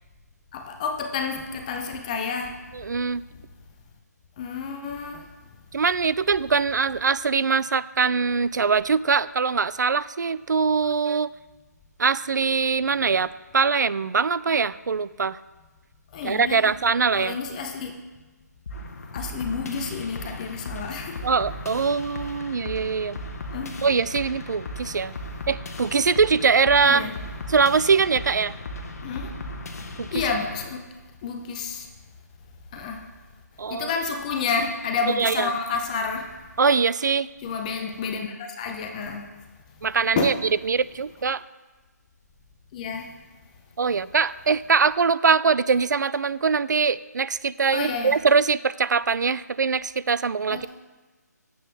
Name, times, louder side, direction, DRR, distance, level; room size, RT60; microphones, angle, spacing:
voice 1, 0.5-2.6 4.4-5.3 16.1-16.7 17.1-17.9 19.1-21.3 23.5-23.7 26.8-27.1 29.0-29.4 30.1-30.8 31.2-31.9 32.7-33.0 33.7-36.3 37.4-39.3 40.2-40.4 42.7-43.1 47.7-48.2 50.5-50.7, left 5 dB, 25° left, 4 dB, 0.7 m, -30 dB
voice 2, 2.7-3.2 5.7-11.3 12.0-15.4 16.2-17.4 21.2-23.2 23.8-25.1 25.5-27.1 27.5-28.5 30.0-30.2 33.6-33.9 35.1-35.5 36.6-37.3 39.8-40.3 40.6-41.4 43.8-50.7, right 5 dB, 80° right, 17 dB, 0.3 m, -22 dB
sound 1, 18.7-30.7, left 1 dB, 55° left, 1.1 m, -36 dB
9.6 x 7.7 x 3.4 m, 1.2 s
figure-of-eight pair, 155°, 10 cm